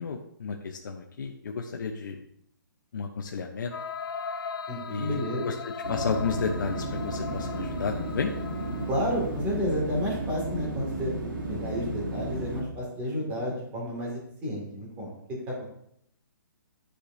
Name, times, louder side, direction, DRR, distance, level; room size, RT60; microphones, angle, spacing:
voice 1, 0.0-2.2 2.9-3.7 4.9-8.3, left 5 dB, 65° left, 2 dB, 0.8 m, -32 dB
sound 1, 3.7-9.3, left 6 dB, 90° left, 0.4 m, -38 dB
voice 2, 4.7-5.5 8.9-11.1 11.5-15.1 15.5-15.7, equal, 15° right, -3 dB, 2.1 m, -31 dB
sound 2, 5.8-12.6, right 1 dB, 75° right, 2.3 m, -33 dB
11.5 x 5.0 x 2.6 m, 0.73 s
hypercardioid pair, 165°, 11 cm